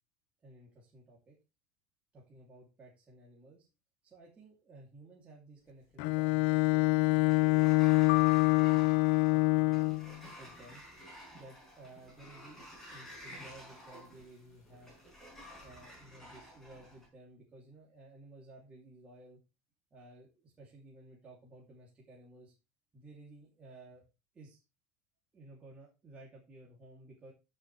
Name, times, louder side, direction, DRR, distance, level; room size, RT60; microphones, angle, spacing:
voice 1, 0.4-1.3 2.1-3.7 4.0-7.7 8.3-8.9 9.3-9.8 10.4-10.8 11.3-12.6 12.9-14.9 15.6-19.4 19.9-22.5 22.9-24.0 24.3-24.6 25.3-27.3, right 2 dB, 15° right, -4 dB, 2.9 m, -55 dB
Bowed string instrument, 6.0-10.1, left 27 dB, 55° left, 0.4 m, -26 dB
Sliding door, 6.5-17.1, equal, 5° left, 4.9 m, -52 dB
sound 1, 8.1-10.2, left 24 dB, 85° left, 0.9 m, -38 dB
14.5 x 6.5 x 3.3 m, 0.28 s
cardioid pair, 165°, 7 cm